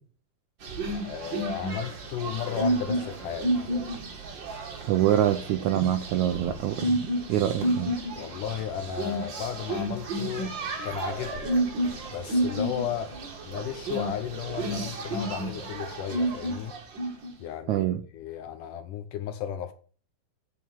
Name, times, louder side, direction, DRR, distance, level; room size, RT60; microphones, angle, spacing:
sound 1, 0.6-17.3, right 1 dB, 40° right, 1.9 m, -31 dB
voice 1, 0.9-3.6 8.1-10.5 10.8-11.5 12.1-13.1 13.5-16.7 17.4-17.8 18.1-19.7, left 9 dB, 75° left, 2.1 m, -34 dB
voice 2, 4.9-7.9 17.7-18.0, right 11 dB, 85° right, 1.7 m, -25 dB
9.5 x 6.1 x 7.1 m
omnidirectional pair, 4.2 m